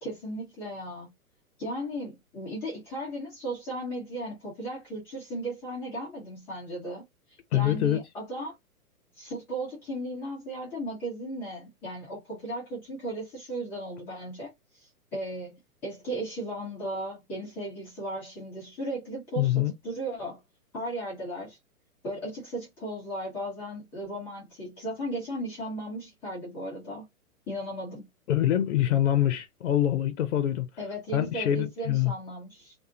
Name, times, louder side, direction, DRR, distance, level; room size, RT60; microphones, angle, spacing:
voice 1, 0.0-1.1 1.6-7.0 7.5-8.6 9.2-15.6 15.8-20.4 20.7-21.6 22.0-27.1 27.5-28.1 30.8-32.7, right 1 dB, 5° left, 0.4 m, -36 dB
voice 2, 7.5-8.0 19.4-19.7 28.3-30.7 31.1-32.1, left 12 dB, 55° left, 0.6 m, -25 dB
2.5 x 2.3 x 2.7 m
figure-of-eight pair, 115°, 44 cm